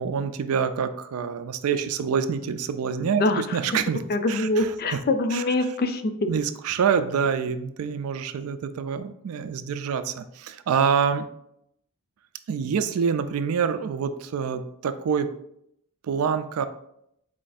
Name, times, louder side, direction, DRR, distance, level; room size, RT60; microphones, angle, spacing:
voice 1, 0.0-4.0 4.3-4.7 5.3-5.4 6.3-11.3 12.5-15.3 16.1-16.7, right 6 dB, 75° right, 11 dB, 0.4 m, -26 dB
voice 2, 3.1-3.6 4.1-6.3, left 2 dB, 45° left, 8 dB, 0.4 m, -24 dB
4.5 x 2.5 x 4.0 m, 0.76 s
head